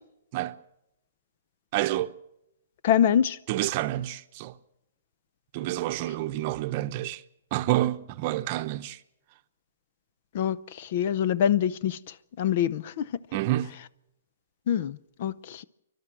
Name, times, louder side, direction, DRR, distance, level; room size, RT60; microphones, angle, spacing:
voice 1, 1.7-2.1 3.5-4.6 5.5-7.2 7.5-9.0 13.3-13.8, right 15 dB, 40° right, 0.8 m, -28 dB
voice 2, 2.8-3.4 10.3-13.1 14.7-15.6, left 9 dB, 50° left, 0.7 m, -25 dB
29.0 x 12.0 x 7.9 m
hypercardioid pair, 145°, 0 cm